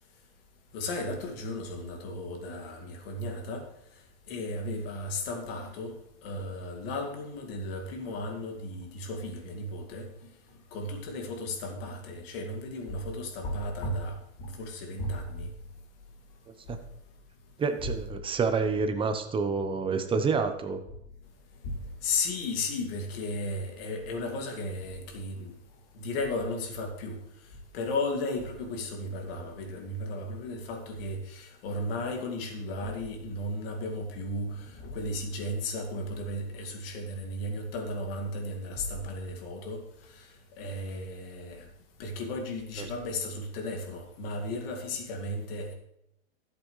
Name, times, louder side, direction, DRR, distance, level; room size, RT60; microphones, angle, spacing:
voice 1, 0.7-3.7 4.3-6.0 6.2-10.1 10.7-15.5 21.6-25.6 25.9-27.2 27.7-39.8 40.1-40.3 40.6-41.7 42.0-45.7, left 2 dB, 55° left, 2.3 m, -35 dB
voice 2, 17.6-20.8, right 5 dB, 15° right, 0.9 m, -28 dB
13.0 x 8.1 x 3.2 m
hypercardioid pair, 130°, 34 cm